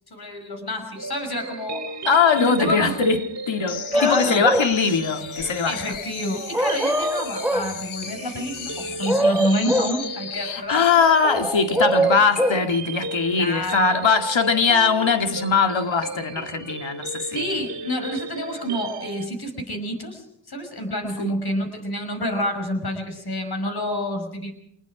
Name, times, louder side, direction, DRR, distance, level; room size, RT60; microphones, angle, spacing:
voice 1, 0.1-1.8 2.4-3.0 3.9-4.4 5.6-10.8 13.3-14.0 17.3-24.5, equal, 50° left, 5.8 m, -28 dB
sound 1, 1.0-19.3, right 3 dB, 35° right, 3.1 m, -36 dB
voice 2, 2.1-5.9 10.4-17.6 21.2-21.3, left 5 dB, 70° left, 2.1 m, -21 dB
sound 2, 3.7-11.2, left 9 dB, 90° left, 1.0 m, -36 dB
sound 3, 3.9-4.7 6.5-7.7 8.8-10.0 11.2-12.7, right 1 dB, 5° right, 1.0 m, -22 dB
26.5 x 20.5 x 4.9 m
cardioid pair, 55°, 47 cm